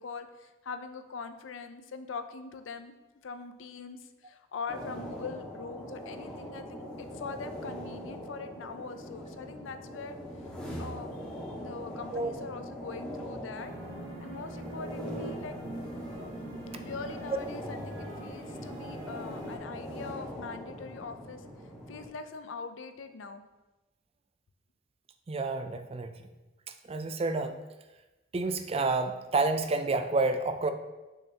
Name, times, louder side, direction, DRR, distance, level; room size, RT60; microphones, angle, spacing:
voice 1, 0.0-2.9 3.2-10.2 10.8-13.7 14.2-15.5 16.8-21.4 21.9-23.4, left 5 dB, 85° left, 9 dB, 0.5 m, -42 dB
sound 1, 4.7-22.1, equal, 5° left, 1.6 m, -41 dB
sound 2, 13.5-19.6, equal, 80° right, 1.4 m, -44 dB
voice 2, 25.3-26.1 26.9-27.6 28.3-30.7, right 3 dB, 30° right, 8 dB, 0.4 m, -29 dB
6.4 x 6.4 x 2.8 m, 1.1 s
head